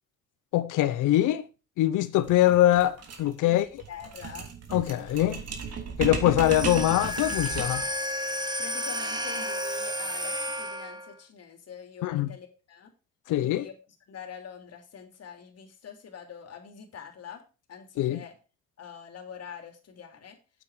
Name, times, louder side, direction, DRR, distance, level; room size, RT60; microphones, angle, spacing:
voice 1, 0.5-1.5 1.8-3.8 4.7-5.4 6.0-7.8 12.0-12.3 13.3-13.7 18.0-18.2, left 13 dB, 90° left, 0.8 m, -23 dB
sound 1, 2.2-7.9, right 6 dB, 55° right, 2.9 m, -36 dB
voice 2, 3.4-4.5 8.6-12.9 13.3-13.7 14.1-17.4 17.7-18.3 18.8-20.4, left 7 dB, 55° left, 3.2 m, -45 dB
sound 2, 6.4-11.2, left 1 dB, 15° right, 1.3 m, -32 dB
9.0 x 8.4 x 4.9 m
cardioid pair, 90°, 30 cm